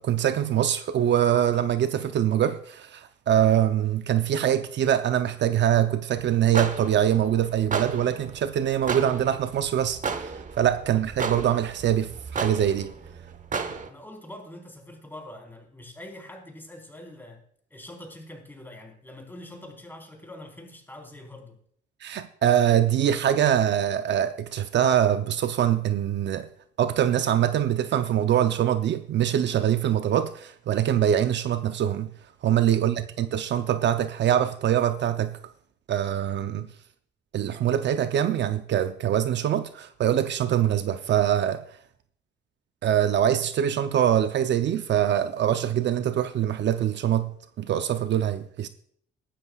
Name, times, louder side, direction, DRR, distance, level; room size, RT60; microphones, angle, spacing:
voice 1, 0.0-12.9 22.0-26.5 26.8-32.1 32.4-35.4 35.9-36.7 37.3-41.6 42.8-47.3 47.6-48.7, right 10 dB, 65° right, 0.7 m, -24 dB
sound 1, 6.2-13.9, right 5 dB, 40° right, 1.1 m, -34 dB
voice 2, 13.6-17.4 17.7-21.6 32.7-32.9, left 1 dB, 10° left, 4.3 m, -44 dB
18.0 x 12.5 x 2.4 m
cardioid pair, 90°, 20 cm